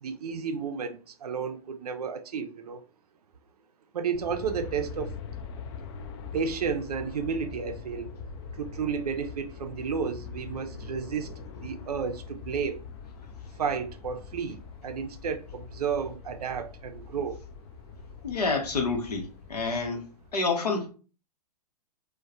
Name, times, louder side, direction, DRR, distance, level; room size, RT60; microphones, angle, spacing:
voice 1, 0.0-2.8 3.9-5.2 6.3-8.1 8.5-11.3 11.6-12.9 13.6-17.4, right 6 dB, 75° right, 0.4 m, -32 dB
Aircraft, 4.1-20.3, left 5 dB, 45° left, 0.4 m, -43 dB
voice 2, 18.2-20.1 20.3-20.9, left 4 dB, 85° left, 0.7 m, -28 dB
2.3 x 2.1 x 2.6 m
figure-of-eight pair, 115°, 20 cm